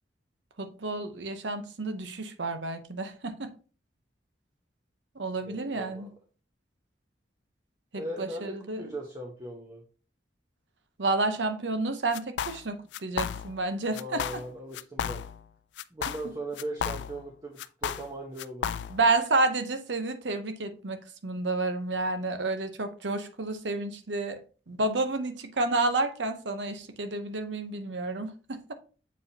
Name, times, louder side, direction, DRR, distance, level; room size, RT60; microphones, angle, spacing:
voice 1, 0.6-3.5 5.2-6.1 7.9-8.8 11.0-14.4 18.9-24.4 24.7-28.7, right 2 dB, 80° right, 0.8 m, -30 dB
voice 2, 5.4-6.1 7.9-9.8 13.8-15.2 15.9-18.7, right 1 dB, 25° right, 1.0 m, -39 dB
sound 1, 12.1-12.7 12.9-13.7 13.9-14.5 14.7-15.5 15.8-17.3 17.6-19.1, left 8 dB, 75° left, 0.3 m, -34 dB
7.0 x 4.8 x 2.8 m
head